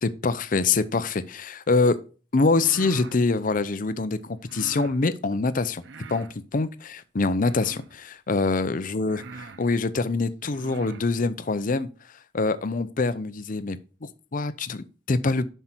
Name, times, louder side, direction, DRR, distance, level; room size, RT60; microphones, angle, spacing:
voice 1, 0.0-2.0 2.3-5.8 6.1-11.9 12.3-15.4, left 3 dB, 45° left, 0.6 m, -25 dB
sound 1, 2.4-3.2 4.4-5.0 5.8-6.4 7.4-8.0 8.6-8.7 9.1-9.6 10.4-11.1, right 3 dB, 70° right, 0.6 m, -42 dB
7.5 x 5.6 x 4.5 m
head